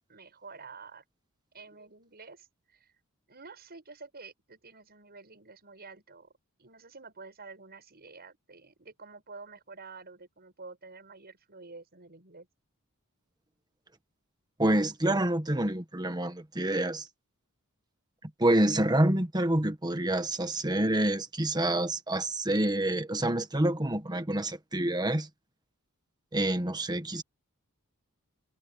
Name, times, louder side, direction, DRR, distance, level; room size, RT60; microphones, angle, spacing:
voice 1, 0.1-1.0 1.5-2.9 3.3-6.3 6.6-12.5, right 4 dB, 45° right, 7.0 m, -49 dB
voice 2, 14.6-17.1 18.4-25.3 26.3-27.2, right 1 dB, 20° right, 1.6 m, -27 dB
head